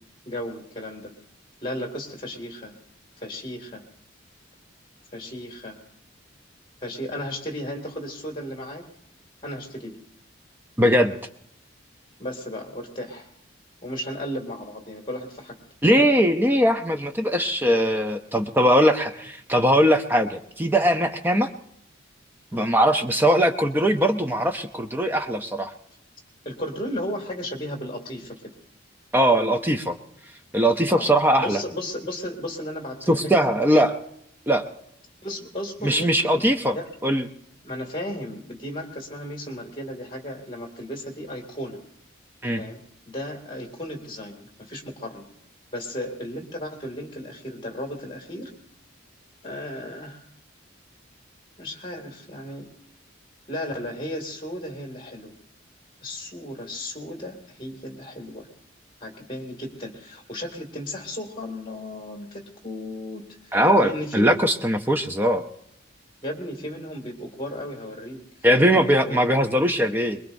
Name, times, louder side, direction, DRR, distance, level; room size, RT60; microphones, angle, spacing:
voice 1, 0.3-1.1 1.6-2.8 3.2-3.8 5.1-5.8 6.8-8.9 9.4-10.0 12.2-13.3 13.8-15.6 22.5-22.7 26.4-28.5 30.9-31.1 31.4-33.4 35.2-36.9 37.6-41.8 42.6-42.8 43.1-45.3 45.7-48.5 49.4-50.2 51.6-52.7 53.5-55.4 56.0-58.5 59.0-64.4 66.2-69.4, left 1 dB, 25° left, 1 dB, 2.2 m, -35 dB
voice 2, 10.8-11.2 15.8-21.5 22.5-25.7 29.1-30.0 30.5-31.6 33.1-34.0 34.5-34.6 35.8-36.8 37.0-37.3 42.4-42.6 63.5-65.4 68.4-70.2, equal, 10° right, 6 dB, 0.5 m, -20 dB
23.0 x 21.5 x 2.6 m, 0.74 s
head